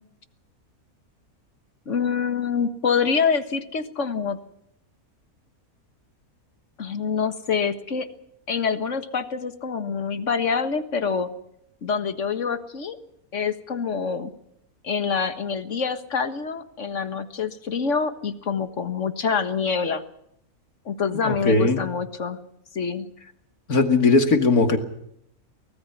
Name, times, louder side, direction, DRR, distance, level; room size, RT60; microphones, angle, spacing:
voice 1, 1.9-4.4 6.8-8.1 8.5-11.3 11.8-13.0 13.3-14.3 14.8-20.0 20.9-22.4 22.7-23.1, left 6 dB, 55° left, 9 dB, 1.8 m, -26 dB
voice 2, 21.2-21.8 23.7-24.8, left 3 dB, 75° left, 6 dB, 2.7 m, -18 dB
24.0 x 20.0 x 5.9 m, 0.74 s
omnidirectional pair, 1.6 m